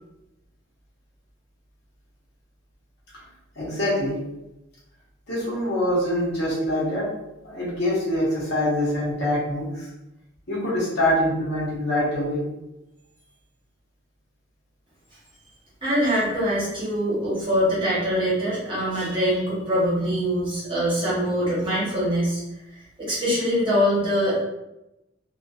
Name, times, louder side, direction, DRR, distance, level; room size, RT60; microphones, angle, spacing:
voice 1, 3.6-4.2 5.3-7.0 7.4-9.9 10.5-12.4, left 1 dB, 60° left, -7 dB, 1.0 m, -24 dB
voice 2, 15.8-22.4 22.7-24.4, equal, 25° right, -8 dB, 1.0 m, -23 dB
2.5 x 2.2 x 2.3 m, 0.93 s
head